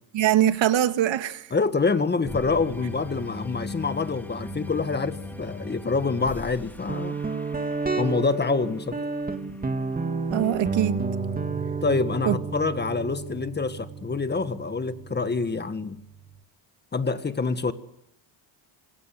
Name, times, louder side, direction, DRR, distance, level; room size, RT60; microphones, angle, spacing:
voice 1, 0.1-1.5 10.3-11.0 12.3-12.4, right 11 dB, 70° right, 1.9 m, -22 dB
voice 2, 1.5-7.2 8.0-9.0 11.8-16.0 16.9-17.7, left 4 dB, 20° left, 1.7 m, -26 dB
sound 1, 2.2-8.6, left 1 dB, 5° left, 2.5 m, -38 dB
Guitar, 6.9-16.4, right 4 dB, 20° right, 2.5 m, -31 dB
26.5 x 25.5 x 7.7 m
cardioid pair, 150°, 47 cm